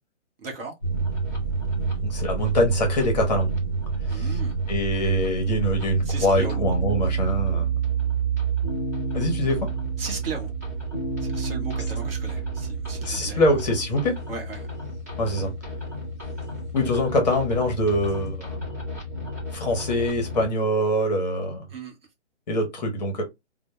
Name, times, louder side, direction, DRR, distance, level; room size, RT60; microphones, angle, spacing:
voice 1, 0.4-0.7 4.1-4.6 6.0-6.6 10.0-10.5 11.2-13.6 14.3-14.7 21.7-22.0, right 4 dB, 50° right, 0.8 m, -36 dB
sound 1, 0.8-20.5, right 4 dB, 15° right, 0.4 m, -29 dB
voice 2, 2.0-3.5 4.1-4.4 4.7-7.7 9.1-9.7 13.0-14.2 15.2-15.5 16.7-18.6 19.5-21.7 22.5-23.2, left 1 dB, 35° left, 0.7 m, -24 dB
2.1 x 2.0 x 2.8 m
hypercardioid pair, 155°, 37 cm